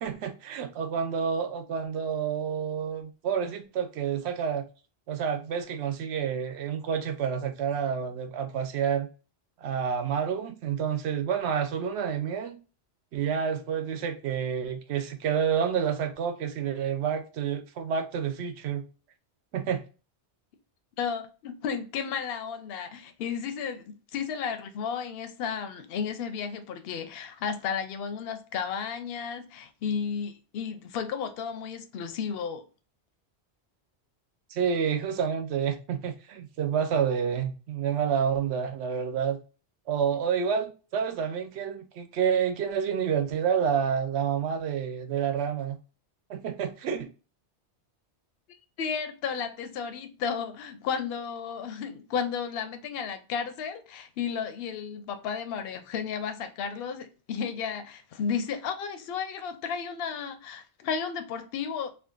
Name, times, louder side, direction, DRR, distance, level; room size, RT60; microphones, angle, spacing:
voice 1, 0.0-4.6 5.1-9.1 9.6-12.6 13.1-18.9 19.5-19.8 34.5-39.4 39.9-45.8 46.3-47.1, right 7 dB, 75° right, 0.8 m, -29 dB
voice 2, 21.0-32.6 48.8-61.9, left 6 dB, 65° left, 0.7 m, -33 dB
2.5 x 2.4 x 3.6 m
omnidirectional pair, 1.2 m